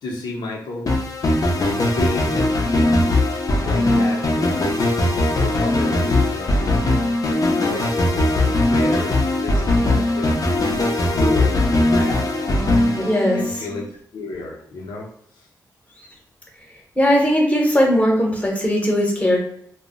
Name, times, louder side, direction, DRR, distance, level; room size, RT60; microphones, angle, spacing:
voice 1, 0.0-0.9 1.8-2.4 3.6-4.6 5.3-7.0 7.6-7.9 8.3-12.6 13.3-13.9 14.1-15.1 15.4-15.5, left 2 dB, 90° left, -1 dB, 0.7 m, -32 dB
sound 1, 0.9-13.8, left 1 dB, 55° left, 0.6 m, -20 dB
voice 2, 13.0-13.4 16.0-16.1 17.0-19.4, equal, 20° left, -1 dB, 0.9 m, -18 dB
2.3 x 2.0 x 3.6 m, 0.66 s
cardioid pair, 75°, 7 cm